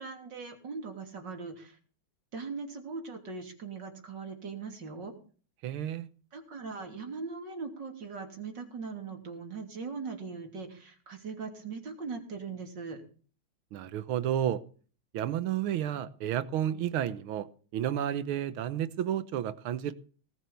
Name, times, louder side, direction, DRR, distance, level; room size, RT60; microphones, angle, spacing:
voice 1, 0.0-1.8 2.3-5.1 6.3-13.0, right 4 dB, 60° right, 4 dB, 3.5 m, -40 dB
voice 2, 5.6-6.1 13.7-14.6 15.1-17.5 17.7-19.9, right 10 dB, 90° right, 14 dB, 1.8 m, -31 dB
18.5 x 7.7 x 7.0 m, 0.41 s
omnidirectional pair, 2.2 m